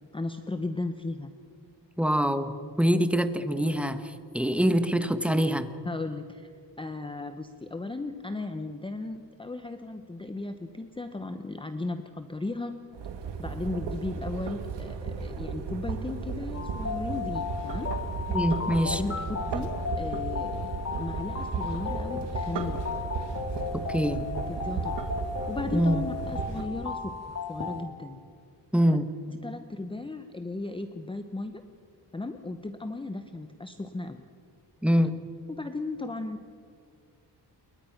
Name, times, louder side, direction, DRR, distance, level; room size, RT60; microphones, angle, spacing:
voice 1, 0.1-1.3 5.8-6.5 6.8-12.8 13.4-17.9 18.9-22.8 24.5-25.1 25.5-28.2 28.9-29.0 29.3-31.6 32.1-34.2 35.5-36.5, left 2 dB, 10° left, 8 dB, 0.9 m, -36 dB
voice 2, 2.0-5.7 18.3-19.0 23.7-24.2 25.7-26.0 28.7-29.1 34.8-35.2, equal, 5° right, 9 dB, 1.2 m, -25 dB
sound 1, 12.9-26.6, right 5 dB, 85° right, 2.4 m, -34 dB
sound 2, 16.5-27.8, left 5 dB, 35° left, 2.4 m, -35 dB
28.5 x 22.5 x 5.9 m, 2.3 s
wide cardioid pair, 140°, 41 cm